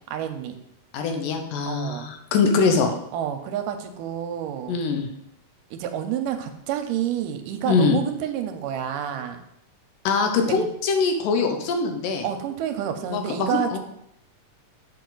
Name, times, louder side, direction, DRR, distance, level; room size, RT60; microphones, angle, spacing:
voice 1, 0.1-0.6 1.7-2.1 3.1-4.8 5.7-9.4 10.5-10.7 12.2-13.8, right 9 dB, 80° right, 7 dB, 2.2 m, -29 dB
voice 2, 0.9-2.9 4.7-5.1 7.7-8.0 10.1-12.3 13.1-13.8, left 4 dB, 85° left, 5 dB, 2.5 m, -23 dB
7.1 x 5.3 x 3.9 m, 0.77 s
omnidirectional pair, 3.8 m